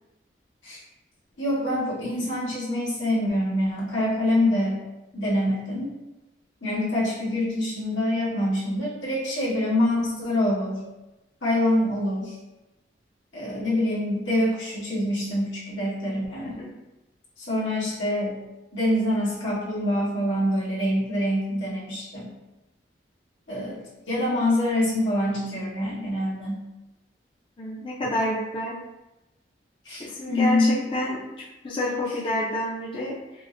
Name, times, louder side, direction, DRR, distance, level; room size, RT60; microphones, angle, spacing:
voice 1, 1.4-4.8 5.1-5.9 6.6-10.8 11.4-12.3 13.3-16.5 17.4-18.4 18.7-22.3 23.5-26.6 29.8-30.8, left 1 dB, 90° left, -8 dB, 1.5 m, -25 dB
voice 2, 27.6-28.8 30.0-31.2 31.6-33.2, left 1 dB, 30° left, -5 dB, 0.5 m, -28 dB
4.8 x 2.1 x 2.5 m, 0.99 s
head